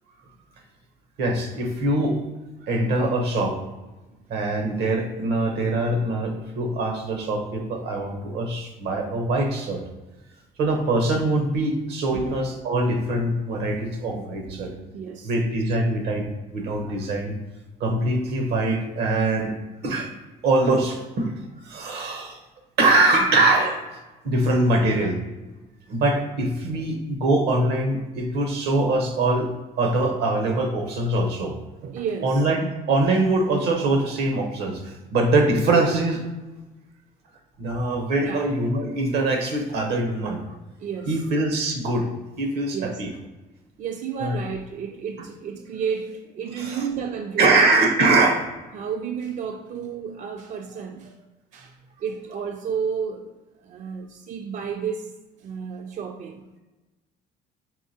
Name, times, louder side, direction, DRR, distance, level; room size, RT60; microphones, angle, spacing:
voice 1, 0.1-0.4 2.6-2.8 7.9-8.1 12.1-12.3 14.1-15.3 16.7-17.0 21.6-22.0 23.2-23.3 31.8-32.5 37.6-38.5 38.8-38.9 40.8-41.2 42.7-43.1 43.8-47.6 48.7-51.2 51.5-55.1 55.4-56.5, right 6 dB, 50° right, 5 dB, 0.4 m, -32 dB
voice 2, 1.2-2.2 2.7-3.6 4.3-9.8 10.6-14.7 15.2-17.3 17.8-19.5 19.8-20.1 20.4-21.3 21.7-22.4 22.8-23.8 24.2-25.2 25.9-29.5 29.8-31.6 32.2-36.2 37.6-40.4 41.1-42.1 42.4-43.1 44.2-44.4 46.6-46.8 47.4-48.5, right 2 dB, 80° right, 4 dB, 0.9 m, -23 dB
4.6 x 3.2 x 2.8 m, 1.1 s
cardioid pair, 110°, 17 cm